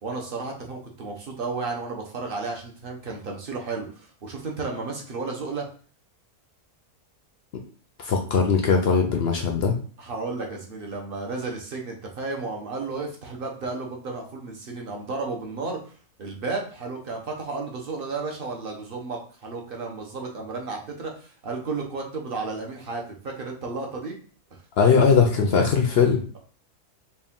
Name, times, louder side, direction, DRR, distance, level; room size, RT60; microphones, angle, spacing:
voice 1, 0.0-5.7 10.0-15.8 16.2-24.2, right 3 dB, 45° right, 1 dB, 0.8 m, -33 dB
voice 2, 8.0-9.7 24.8-26.2, left 5 dB, 65° left, 3 dB, 0.6 m, -20 dB
4.4 x 2.4 x 3.6 m, 0.43 s
omnidirectional pair, 1.6 m